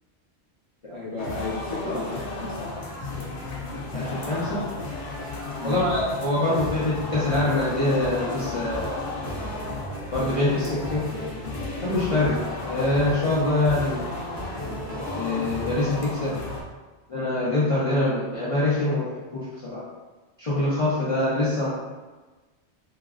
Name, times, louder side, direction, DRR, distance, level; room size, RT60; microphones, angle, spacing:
voice 1, 0.9-2.8 5.6-5.9, left 3 dB, 30° right, -9 dB, 0.7 m, -33 dB
sound 1, 1.2-16.6, left 2 dB, 90° left, 0.9 m, -34 dB
voice 2, 3.9-4.6 5.6-9.0 10.1-11.0 11.8-14.1 15.1-16.3 17.1-19.8 20.4-21.7, left 2 dB, 40° left, -10 dB, 0.5 m, -24 dB
sound 2, 4.8-16.1, right 1 dB, 70° right, 1.5 m, -40 dB
3.6 x 2.0 x 2.4 m, 1.2 s
omnidirectional pair, 1.1 m